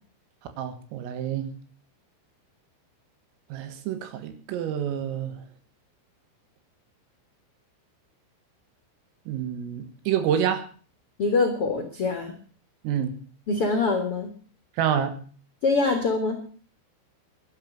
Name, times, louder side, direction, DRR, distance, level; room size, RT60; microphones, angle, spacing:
voice 1, 0.6-1.5 3.5-5.4 9.3-10.6 12.8-13.1 14.8-15.2, right 9 dB, 90° right, 8 dB, 4.3 m, -28 dB
voice 2, 11.2-12.3 13.5-14.3 15.6-16.4, left 3 dB, 65° left, 5 dB, 1.4 m, -24 dB
11.5 x 11.5 x 7.6 m, 0.42 s
omnidirectional pair, 5.9 m